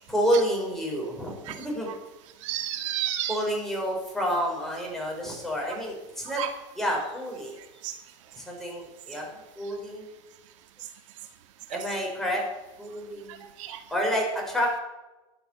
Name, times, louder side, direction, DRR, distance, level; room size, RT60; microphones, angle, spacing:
voice 1, 0.1-1.9 3.3-6.4 6.8-7.6 8.4-10.1 11.7-12.4 12.8-13.5 13.9-14.8, equal, ahead, -2 dB, 6.0 m, -29 dB
voice 2, 2.4-3.4 5.7-5.8 6.3-6.5 7.8-7.9 11.7-11.8 13.3-13.8, right 12 dB, 75° right, 6 dB, 2.0 m, -32 dB
13.0 x 10.5 x 8.6 m, 1.1 s
supercardioid pair, 125°, 16 cm